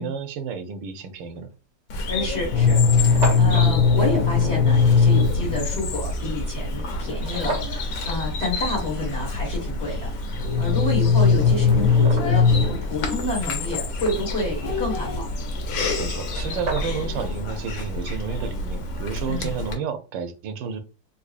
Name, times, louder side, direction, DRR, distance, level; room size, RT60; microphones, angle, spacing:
voice 1, 0.0-1.5 16.0-20.8, right 6 dB, 85° right, 8 dB, 1.3 m, -31 dB
sound 1, 1.4-1.5 2.3-2.4 2.5-2.6 2.8-3.7 7.2-7.8 10.7-10.8 11.4-12.5 15.9-16.0 16.2-17.2, right 3 dB, 55° right, 0.8 m, -32 dB
Bird vocalization bird call bird song, 1.9-19.7, left 2 dB, 85° left, 1.5 m, -29 dB
voice 2, 2.1-15.3 19.3-19.5, left 2 dB, 40° left, -4 dB, 1.3 m, -29 dB
sound 2, 2.5-6.7 10.3-12.8, left 5 dB, 65° left, 1.1 m, -19 dB
4.0 x 2.7 x 2.4 m, 0.34 s
omnidirectional pair, 2.0 m